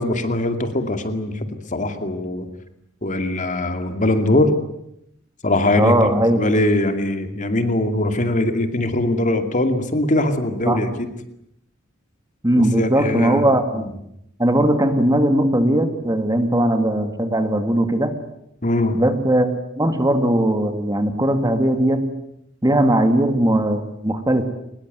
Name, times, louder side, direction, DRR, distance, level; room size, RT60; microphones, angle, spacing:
voice 1, 0.0-2.4 3.0-4.5 5.4-10.9 12.5-13.5 13.8-13.9 18.6-19.0, left 1 dB, 40° left, 8 dB, 2.4 m, -21 dB
voice 2, 5.8-6.4 10.7-10.8 12.4-13.8 14.4-18.1 18.9-19.5 19.8-22.1 22.6-24.5, right 1 dB, 20° right, 8 dB, 2.2 m, -19 dB
23.5 x 21.0 x 9.4 m, 0.78 s
head